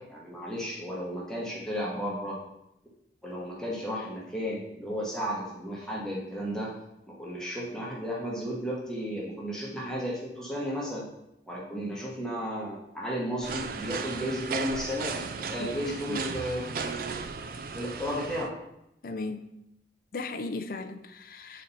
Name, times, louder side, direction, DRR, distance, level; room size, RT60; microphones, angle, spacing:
voice 1, 0.0-2.4 3.2-6.7 7.1-11.0 11.5-17.1 17.7-18.6, equal, 5° left, 1.2 m, -34 dB
sound 1, 13.4-18.5, right 5 dB, 50° right, 0.3 m, -35 dB
voice 2, 15.9-16.2 19.0-19.5 20.1-21.6, left 3 dB, 50° left, 0.5 m, -37 dB
7.5 x 4.2 x 4.1 m
head